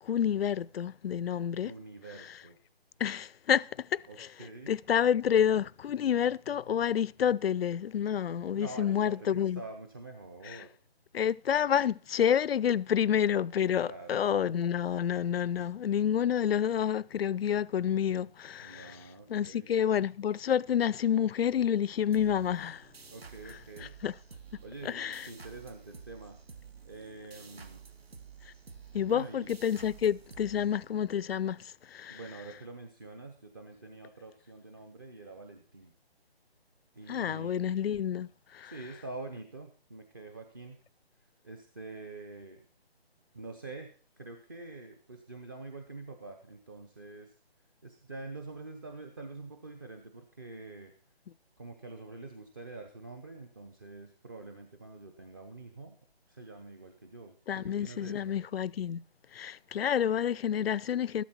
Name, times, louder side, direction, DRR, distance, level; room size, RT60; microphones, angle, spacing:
voice 1, 0.0-1.7 3.0-9.6 10.4-10.6 11.1-19.0 19.3-22.9 23.5-24.1 24.8-25.3 28.9-32.2 37.1-38.7 57.5-59.0 59.3-61.2, left 9 dB, 70° left, 0.5 m, -29 dB
voice 2, 1.6-2.6 4.1-4.8 8.5-10.7 13.8-14.5 18.6-19.7 23.1-24.0 24.6-26.4 26.8-27.8 29.1-29.6 32.1-35.9 36.9-37.8 38.6-40.8 41.4-42.7 43.3-43.9 44.2-47.3 47.8-50.9 51.6-56.0 56.3-58.4, right 3 dB, 20° right, 0.6 m, -46 dB
sound 1, 22.1-31.3, right 6 dB, 70° right, 1.9 m, -51 dB
13.5 x 11.5 x 4.3 m
figure-of-eight pair, 160°, 32 cm